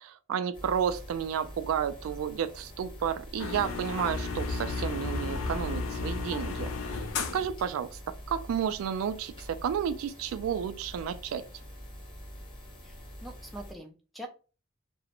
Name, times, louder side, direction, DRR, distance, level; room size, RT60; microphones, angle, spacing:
voice 1, 0.0-6.7 7.2-11.5, right 8 dB, 90° right, 0.3 m, -32 dB
sound 1, 0.5-13.7, equal, 25° left, 0.9 m, -46 dB
sound 2, 3.4-7.5, left 4 dB, 80° left, 0.4 m, -33 dB
voice 2, 12.8-14.3, right 1 dB, ahead, 0.4 m, -44 dB
2.4 x 2.0 x 2.9 m
head